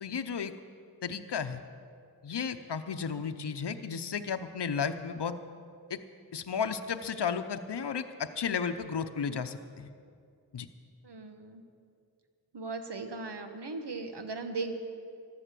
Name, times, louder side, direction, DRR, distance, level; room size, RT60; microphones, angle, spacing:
voice 1, 0.0-0.5 1.0-1.6 2.2-5.4 5.9-6.0 6.3-9.9 10.5-10.7, left 6 dB, 80° left, 8 dB, 0.7 m, -33 dB
voice 2, 11.0-11.6 12.5-14.8, right 3 dB, 80° right, 6 dB, 1.3 m, -38 dB
15.0 x 12.0 x 7.6 m, 2.3 s
wide cardioid pair, 45°, 40 cm